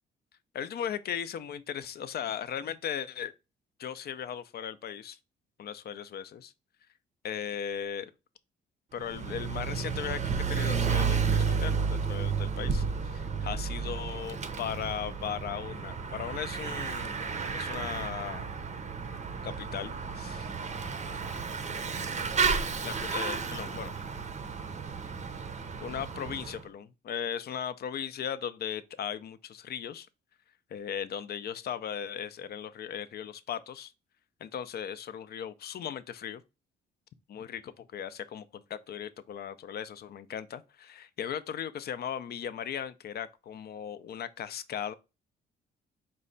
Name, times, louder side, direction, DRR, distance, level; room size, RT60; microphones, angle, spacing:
voice 1, 0.5-3.3 3.8-5.2 5.6-6.5 7.2-8.1 8.9-17.1 17.5-18.5 19.4-20.5 22.8-23.9 25.8-30.1 30.7-33.9 34.4-36.4 37.3-44.9, left 8 dB, 55° left, 0.5 m, -37 dB
Bicycle / Mechanisms, 9.0-26.6, right 5 dB, 35° right, 0.6 m, -32 dB
4.6 x 2.2 x 3.8 m
cardioid pair, 90°, 20 cm